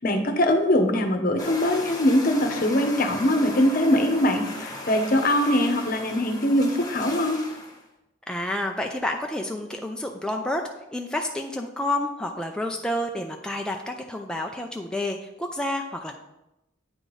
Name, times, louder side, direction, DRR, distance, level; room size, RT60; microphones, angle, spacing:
voice 1, 0.0-7.4, left 1 dB, 50° left, 6 dB, 0.9 m, -22 dB
sound 1, 1.4-7.8, left 2 dB, 20° left, 1.4 m, -37 dB
voice 2, 8.3-10.6 10.9-16.1, left 1 dB, 5° left, 2 dB, 0.4 m, -29 dB
8.7 x 3.9 x 4.9 m, 0.91 s
head